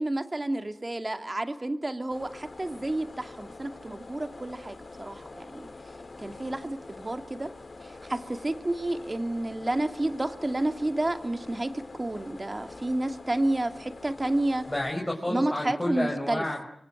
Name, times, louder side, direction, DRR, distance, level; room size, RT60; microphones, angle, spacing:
voice 1, 0.0-5.7 6.2-7.5 7.8-14.6 15.3-16.4, right 1 dB, 30° right, 7 dB, 2.5 m, -30 dB
sound 1, 2.1-14.9, left 3 dB, 50° left, 2.2 m, -45 dB
voice 2, 14.7-16.7, left 1 dB, 20° left, -1 dB, 5.5 m, -30 dB
26.0 x 24.0 x 9.2 m, 0.70 s
wide cardioid pair, 75°, 0 cm